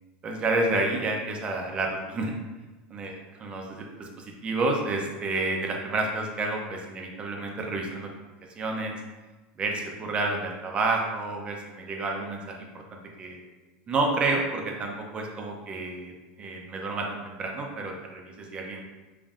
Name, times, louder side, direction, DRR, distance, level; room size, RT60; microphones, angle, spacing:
voice 1, 0.2-2.3 2.9-3.1 3.4-8.1 8.6-9.0 9.6-13.4 13.9-18.8, right 2 dB, 20° right, 1 dB, 0.5 m, -30 dB
5.2 x 2.5 x 2.5 m, 1.2 s
supercardioid pair, 155°, 5 cm